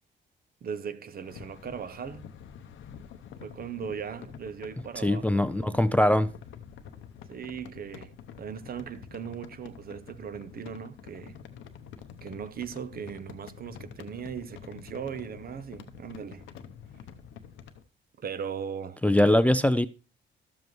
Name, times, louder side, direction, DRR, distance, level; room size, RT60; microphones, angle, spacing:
voice 1, 0.6-2.3 3.4-5.8 7.3-11.4 12.2-16.5 18.2-19.0, right 7 dB, 50° right, 0.7 m, -38 dB
sound 1, 1.1-17.8, left 8 dB, 80° left, 0.8 m, -47 dB
voice 2, 5.0-6.3 19.0-19.9, left 1 dB, 5° left, 0.3 m, -22 dB
12.0 x 7.4 x 3.1 m
cardioid pair, 90°, 20 cm